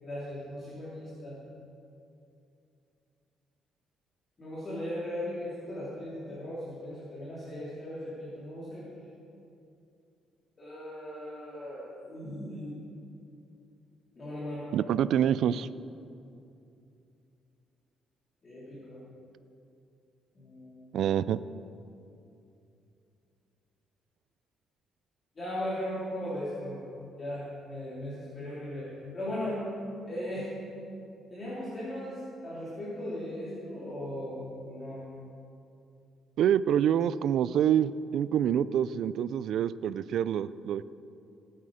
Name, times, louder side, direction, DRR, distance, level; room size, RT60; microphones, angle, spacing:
voice 1, 0.0-1.4 4.4-8.9 10.6-12.8 14.2-14.8 18.4-19.0 20.3-20.8 25.4-26.8 27.2-29.6 30.0-30.5 31.3-34.4 34.6-35.0, left 1 dB, 30° left, -8 dB, 2.9 m, -38 dB
voice 2, 14.7-15.7 20.9-21.4 36.4-40.8, right 9 dB, 65° right, 16 dB, 0.4 m, -26 dB
19.0 x 8.7 x 5.1 m, 2.7 s
cardioid pair, 140°, 0 cm